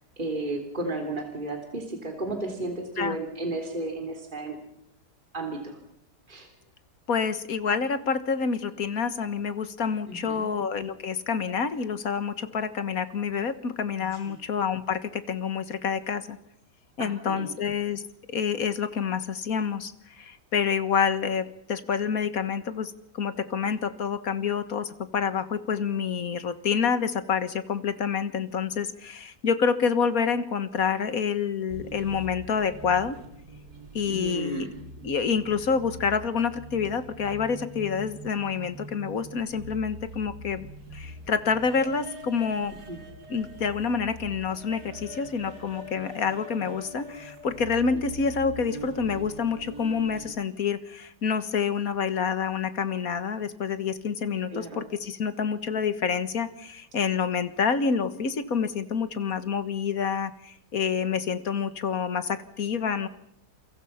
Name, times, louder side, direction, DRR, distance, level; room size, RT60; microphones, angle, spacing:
voice 1, 0.2-4.6 5.3-5.8 6.3-6.5 10.1-10.5 14.3-14.4 17.0-17.5 34.1-34.7 42.9-43.0 54.5-54.8 59.4-59.5, right 2 dB, 30° right, 2 dB, 3.6 m, -33 dB
voice 2, 7.1-16.4 17.0-18.0 18.3-19.9 20.2-33.2 33.9-34.7 35.0-42.7 43.3-63.1, left 6 dB, 60° left, 12 dB, 1.9 m, -28 dB
sound 1, 31.7-50.3, right 1 dB, 70° right, 3.6 m, -43 dB
29.0 x 24.0 x 5.8 m, 0.75 s
omnidirectional pair, 1.7 m